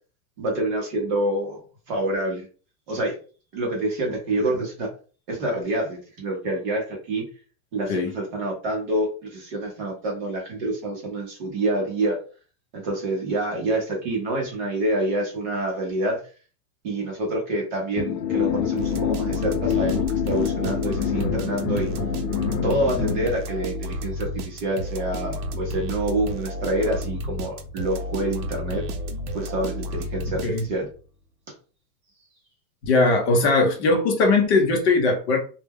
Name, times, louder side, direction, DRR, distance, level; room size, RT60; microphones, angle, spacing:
voice 1, 0.4-1.6 1.9-2.5 2.9-3.2 3.5-4.9 5.3-7.2 7.7-12.2 12.7-16.2 16.8-21.9 22.6-28.8 29.3-30.9, right 1 dB, 30° right, 0 dB, 0.6 m, -27 dB
sound 1, 18.0-23.3, left 8 dB, 80° left, 0.8 m, -26 dB
sound 2, 18.8-31.0, left 1 dB, 70° right, 0.7 m, -31 dB
voice 2, 32.8-35.4, left 3 dB, 45° left, 2 dB, 0.7 m, -20 dB
2.2 x 2.1 x 3.4 m, 0.37 s
supercardioid pair, 165°, 48 cm